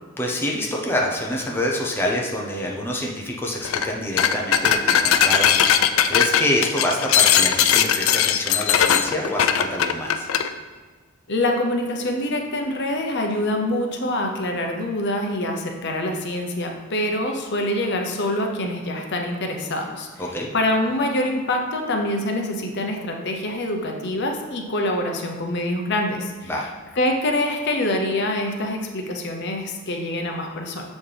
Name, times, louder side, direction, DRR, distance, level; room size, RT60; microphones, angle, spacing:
voice 1, 0.2-10.3 20.2-20.5 26.5-26.7, left 1 dB, 10° left, -2 dB, 0.7 m, -26 dB
sound 1, 3.6-3.9 4.2-10.5, left 8 dB, 75° left, 0.4 m, -19 dB
voice 2, 11.3-20.1 20.5-26.5 27.0-30.8, left 1 dB, 60° left, 2 dB, 0.7 m, -25 dB
7.2 x 4.2 x 3.3 m, 1.4 s
head